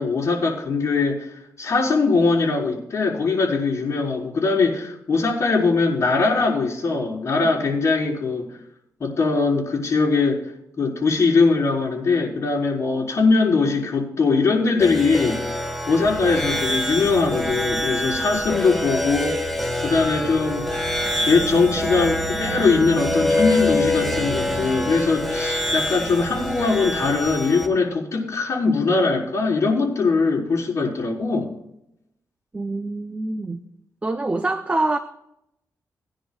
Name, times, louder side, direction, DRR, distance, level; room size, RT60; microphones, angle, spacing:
voice 1, 0.0-8.6 9.0-10.4 10.8-15.4 15.9-19.4 19.8-20.7 21.3-31.5, left 4 dB, 50° left, -5 dB, 4.4 m, -21 dB
sound 1, 14.8-27.7, left 1 dB, 5° left, 1.4 m, -26 dB
sound 2, 16.0-27.4, right 3 dB, 70° right, 2.1 m, -36 dB
voice 2, 32.5-33.6 34.0-35.0, right 2 dB, 20° right, 7 dB, 0.6 m, -25 dB
19.5 x 10.0 x 2.4 m, 0.82 s
cardioid pair, 100°, 6 cm